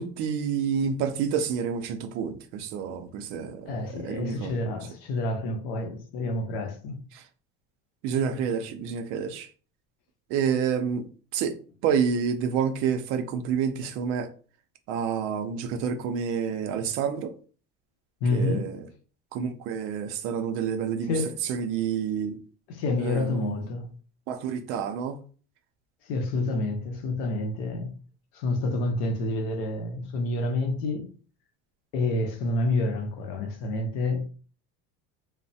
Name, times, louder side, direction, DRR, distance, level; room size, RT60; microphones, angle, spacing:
voice 1, 0.0-4.6 7.1-7.2 8.0-9.5 10.3-11.1 11.3-11.5 11.8-14.3 14.9-17.4 18.3-18.9 19.3-21.1 21.4-22.4 23.0-23.6 24.3-25.2, right 7 dB, 45° right, 0.4 m, -28 dB
voice 2, 3.7-7.0 18.2-18.7 21.0-21.4 22.7-23.9 26.0-27.9 28.3-31.1 31.9-34.2, left 2 dB, 75° left, 0.7 m, -28 dB
3.1 x 2.0 x 2.7 m
cardioid pair, 165°, 30 cm